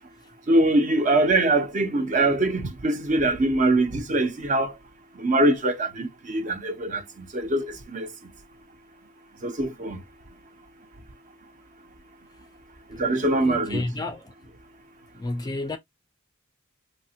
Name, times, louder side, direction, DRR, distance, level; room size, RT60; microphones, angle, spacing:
voice 1, 0.5-4.7 5.2-8.1 9.4-10.0 13.0-13.9, right 2 dB, 40° right, 0.5 m, -23 dB
voice 2, 13.4-14.2 15.2-15.8, left 2 dB, 20° left, 0.3 m, -30 dB
3.2 x 2.1 x 2.7 m
head